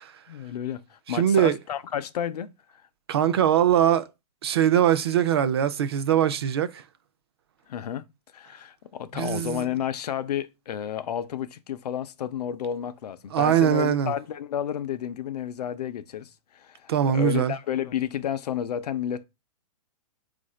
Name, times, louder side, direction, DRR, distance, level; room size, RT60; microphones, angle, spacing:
voice 1, 0.3-2.5 7.7-8.0 8.3-19.2, left 9 dB, 80° left, 0.5 m, -31 dB
voice 2, 1.1-1.6 3.1-4.1 4.4-6.8 9.1-9.7 13.3-14.1 16.9-17.5, right 10 dB, 40° right, 0.4 m, -22 dB
4.8 x 2.5 x 4.1 m
hypercardioid pair, 175°, 20 cm